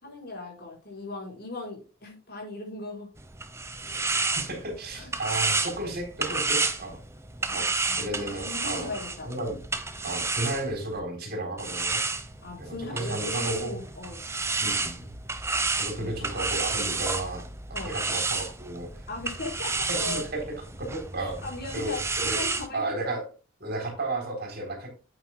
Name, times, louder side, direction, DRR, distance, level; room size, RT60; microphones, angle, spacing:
voice 1, 0.0-3.1 4.9-5.1 7.5-9.3 12.4-14.2 16.0-16.1 17.7-18.0 19.1-20.3 21.2-22.0 22.3-22.8, left 3 dB, 50° left, -1 dB, 5.0 m, -38 dB
sound 1, 3.2-11.0 11.6-22.7, right 3 dB, 15° right, 1.0 m, -31 dB
voice 2, 4.1-7.0 7.5-7.7 8.0-8.9 9.2-9.6 10.0-12.0 12.6-13.8 14.6-15.1 15.8-17.4 17.8-18.9 19.9-20.4 20.8-21.4 21.7-22.4 22.7-23.2 23.6-24.9, right 2 dB, 50° right, 3 dB, 3.9 m, -33 dB
9.5 x 8.8 x 2.3 m, 0.34 s
head